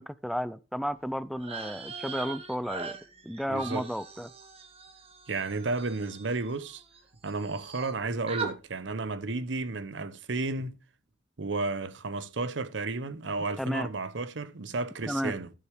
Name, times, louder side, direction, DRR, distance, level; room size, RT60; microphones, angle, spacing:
voice 1, 0.0-3.0 3.2-4.3 13.6-13.9 15.1-15.3, equal, ahead, 0.4 m, -33 dB
sound 1, 1.4-7.0 7.2-8.0 8.3-8.5, right 5 dB, 35° right, 1.5 m, -41 dB
voice 2, 3.5-3.9 5.3-6.8 7.2-10.7 11.4-15.5, right 3 dB, 85° right, 0.9 m, -32 dB
12.5 x 6.5 x 3.4 m
head